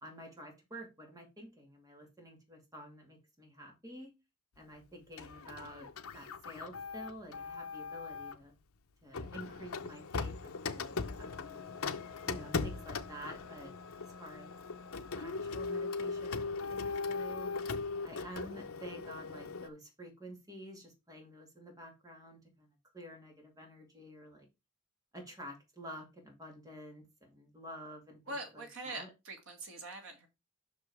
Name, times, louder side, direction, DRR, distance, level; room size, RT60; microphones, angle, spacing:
voice 1, 0.0-4.1 4.6-8.5 9.0-11.7 12.3-13.7 14.0-14.6 14.9-17.5 18.0-24.5 25.1-28.2 28.5-29.1, equal, 15° right, 2.4 m, -50 dB
Printer, 5.2-8.4 9.1-19.7, left 4 dB, 80° left, 0.8 m, -39 dB
voice 2, 28.3-30.3, right 2 dB, 70° right, 2.5 m, -43 dB
6.1 x 5.3 x 4.8 m
head